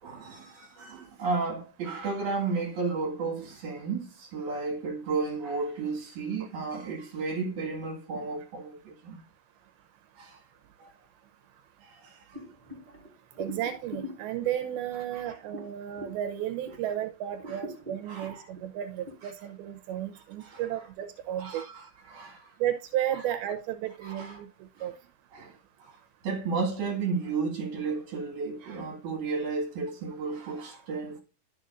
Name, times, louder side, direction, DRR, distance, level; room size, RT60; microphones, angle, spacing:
voice 1, 0.0-9.2 10.2-10.4 10.8-10.9 11.8-12.4 15.1-15.4 17.5-17.6 18.1-18.5 20.4-20.6 21.4-22.5 24.0-24.4 24.8-24.9 25.3-26.0 26.2-31.2, right 4 dB, 55° right, 3.2 m, -33 dB
sound 1, 12.3-16.9 17.3-19.1, equal, 10° right, 3.4 m, -44 dB
voice 2, 13.4-21.6 22.6-24.5 24.8-24.9, right 11 dB, 85° right, 2.6 m, -33 dB
11.5 x 7.0 x 2.6 m
omnidirectional pair, 4.4 m